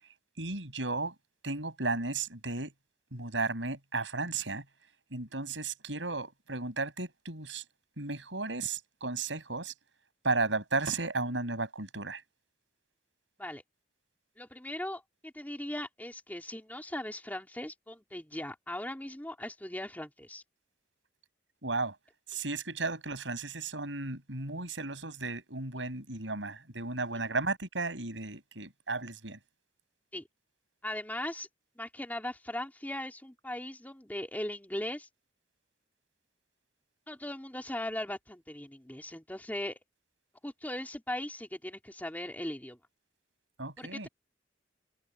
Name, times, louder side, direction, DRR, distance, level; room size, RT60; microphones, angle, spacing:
voice 1, 0.4-1.1 1.4-2.7 3.1-4.6 5.1-7.6 8.0-9.7 10.2-12.2 21.6-22.0 22.3-29.4 43.6-44.1, right 3 dB, 85° right, 6.4 m, -34 dB
voice 2, 14.4-20.4 30.1-30.2 30.8-31.5 31.8-35.1 37.1-39.8 40.4-42.8 43.8-44.1, left 1 dB, 10° left, 2.9 m, -39 dB
head